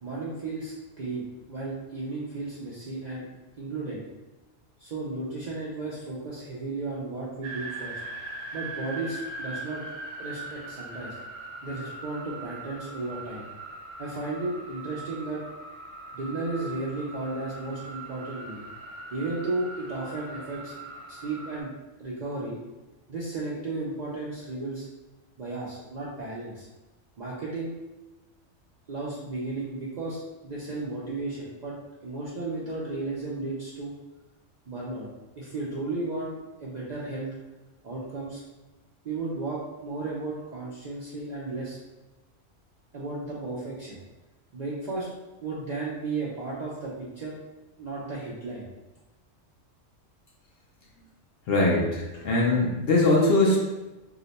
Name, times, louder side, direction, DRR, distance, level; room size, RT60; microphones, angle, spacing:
voice 1, 0.0-3.2 3.6-4.0 4.8-8.0 8.5-9.8 10.2-11.2 11.6-13.5 14.0-15.4 16.1-18.7 19.1-20.7 21.1-21.7 22.0-22.6 23.1-24.9 25.4-26.7 27.2-27.7 28.9-31.8 32.0-33.9 34.7-35.1 35.4-36.3 36.6-37.3 37.8-38.4 39.0-41.8 42.9-44.0 44.5-45.1 45.4-47.3 47.8-48.7, right 3 dB, 60° right, -6 dB, 0.4 m, -34 dB
sound 1, 7.4-21.6, right 2 dB, 80° right, 0.9 m, -41 dB
voice 2, 51.5-53.6, left 2 dB, 60° left, -3 dB, 0.7 m, -21 dB
2.8 x 2.1 x 3.9 m, 1.1 s
omnidirectional pair, 1.3 m